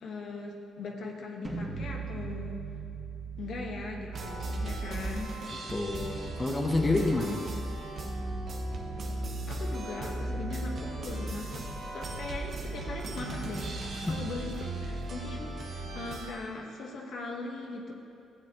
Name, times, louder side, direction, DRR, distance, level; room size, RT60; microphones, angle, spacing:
voice 1, 0.0-2.6 3.4-5.4 9.5-11.6 11.9-13.7 14.0-17.9, left 3 dB, 65° left, 0 dB, 1.3 m, -40 dB
sound 1, 1.4-7.4, right 5 dB, 10° right, 2.1 m, -41 dB
sound 2, 4.1-16.3, right 2 dB, 55° right, 1.0 m, -36 dB
voice 2, 5.5-7.4 14.1-14.2, left 2 dB, 20° left, 1 dB, 0.9 m, -29 dB
13.5 x 8.3 x 3.0 m, 2.5 s
cardioid pair, 90°, 0 cm